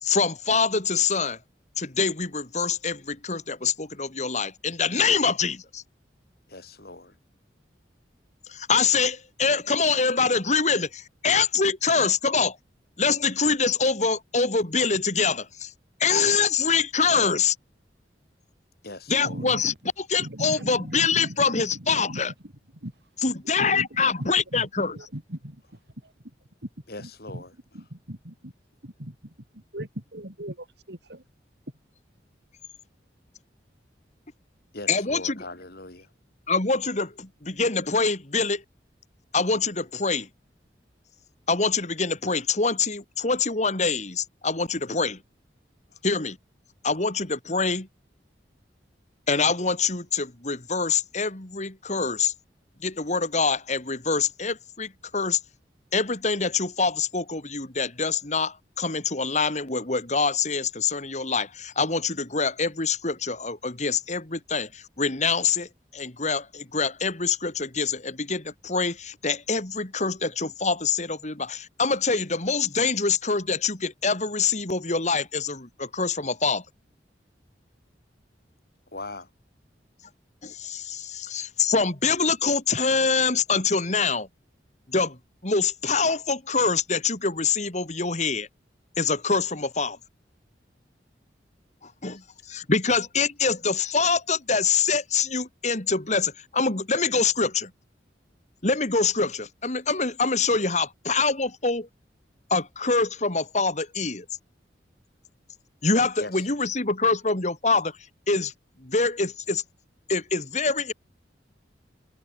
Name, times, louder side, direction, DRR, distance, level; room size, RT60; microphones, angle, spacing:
voice 1, 0.0-1.4 1.8-5.8 8.5-12.6 13.0-15.7 16.0-17.6 19.1-19.7 20.1-22.3 23.2-25.0 34.9-35.4 36.5-38.6 39.3-40.3 41.5-45.2 46.0-46.4 46.8-47.9 49.3-52.3 52.8-55.4 55.9-76.6 80.4-84.3 84.9-85.2 85.4-88.5 89.0-90.0 91.8-92.2 92.5-97.7 98.6-101.9 102.5-104.3 105.8-108.0 108.3-108.5 108.8-109.6 110.1-110.9, left 4 dB, 40° left, 2.4 m, -25 dB
voice 2, 6.5-7.1 18.8-19.5 26.9-27.5 34.7-36.1 45.9-46.0 78.9-79.3 106.2-106.5, left 2 dB, 55° left, 4.3 m, -40 dB
voice 3, 19.2-19.8 20.2-22.9 23.6-25.6 26.0-26.1 26.6-26.7 27.0-27.4 27.7-28.5 28.8-29.1 29.7-31.2, right 1 dB, 65° right, 4.1 m, -38 dB
head